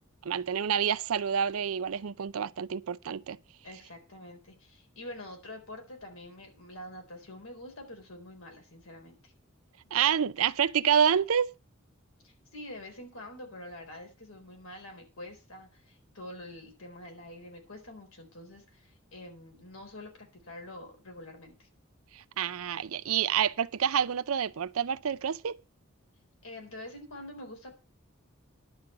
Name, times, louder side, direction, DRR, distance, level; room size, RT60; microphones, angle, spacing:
voice 1, 0.2-3.4 9.9-11.5 22.1-25.6, right 8 dB, 90° right, 0.5 m, -28 dB
voice 2, 3.6-9.3 12.2-21.7 26.4-27.7, left 1 dB, 90° left, 4.0 m, -46 dB
11.0 x 5.3 x 7.8 m
head